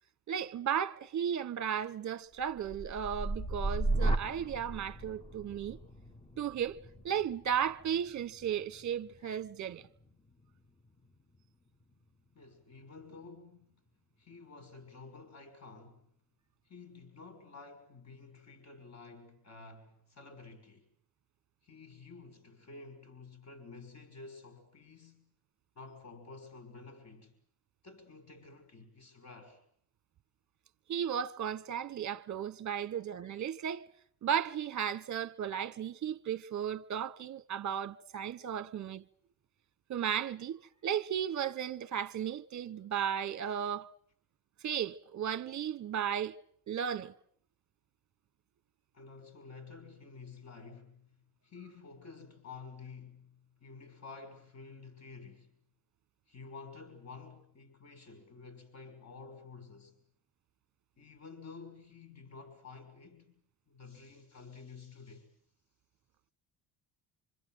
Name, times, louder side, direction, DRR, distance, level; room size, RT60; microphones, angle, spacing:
voice 1, 0.3-5.8 6.4-6.8 7.0-9.8 30.9-33.9 34.2-39.0 39.9-43.9 44.6-46.4 46.7-47.1, right 8 dB, 45° right, 1.2 m, -35 dB
sound 1, 2.4-10.4 10.9-11.4, right 2 dB, 15° left, 1.6 m, -37 dB
voice 2, 12.3-13.7 14.2-16.1 16.6-20.9 21.6-25.3 25.7-27.4 27.8-29.6 48.9-51.1 51.4-55.6 56.3-60.0 61.0-63.4 63.7-65.3, left 4 dB, 40° left, 6.2 m, -51 dB
27.0 x 26.0 x 7.9 m
cardioid pair, 95°, 40 cm